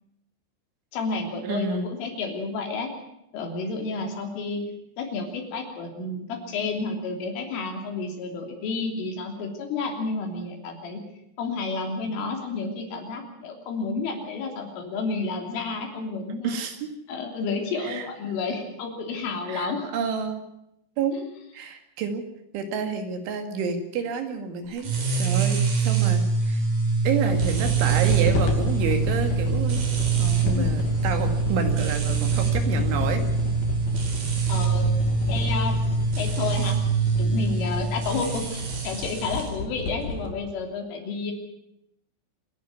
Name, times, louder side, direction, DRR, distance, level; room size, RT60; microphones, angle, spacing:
voice 1, 0.9-2.9 3.3-4.7 5.0-11.0 11.4-16.6 17.1-19.9 21.1-21.2 30.2-30.7 34.5-34.9 35.3-35.8 36.2-36.8 37.2-41.3, left 4 dB, 75° left, 3 dB, 5.6 m, -31 dB
voice 2, 1.4-1.9 16.4-16.8 17.8-18.1 19.5-20.4 21.0-21.3 21.5-22.2 22.5-26.6 27.0-29.9 30.4-33.2, right 5 dB, 70° right, 6 dB, 4.4 m, -29 dB
sound 1, 24.8-39.5, right 5 dB, 45° right, 5.2 m, -24 dB
sound 2, 27.2-40.3, left 3 dB, 55° left, 3.9 m, -31 dB
27.0 x 11.0 x 9.5 m, 0.83 s
omnidirectional pair, 5.8 m